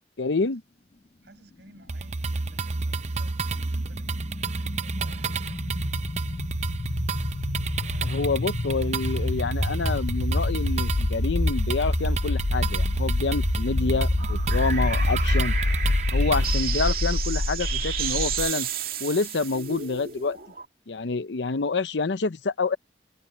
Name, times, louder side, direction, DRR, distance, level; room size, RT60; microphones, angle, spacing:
voice 1, 0.2-0.6 8.0-15.5 16.1-18.7 19.0-20.4 20.9-22.8, left 4 dB, 85° left, 0.7 m, -27 dB
voice 2, 1.2-6.1 7.7-8.5, right 1 dB, 70° right, 7.8 m, -55 dB
sound 1, 1.9-16.5, right 3 dB, 40° right, 0.6 m, -30 dB
sound 2, 2.6-18.5, left 2 dB, 35° left, 0.4 m, -28 dB
sound 3, 14.2-20.6, right 8 dB, 55° right, 2.7 m, -32 dB
head